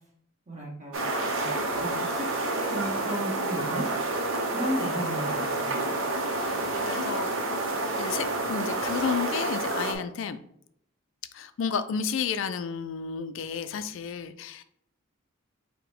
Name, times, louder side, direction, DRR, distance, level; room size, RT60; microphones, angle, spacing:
voice 1, 0.5-1.0 1.3-3.8 4.5-5.8, right 1 dB, 35° right, -2 dB, 1.2 m, -35 dB
sound 1, 0.9-9.9, right 2 dB, 70° right, 0.7 m, -29 dB
voice 2, 6.4-10.4 11.3-14.6, left 6 dB, 65° left, 11 dB, 0.3 m, -32 dB
4.7 x 2.1 x 4.7 m, 0.71 s
head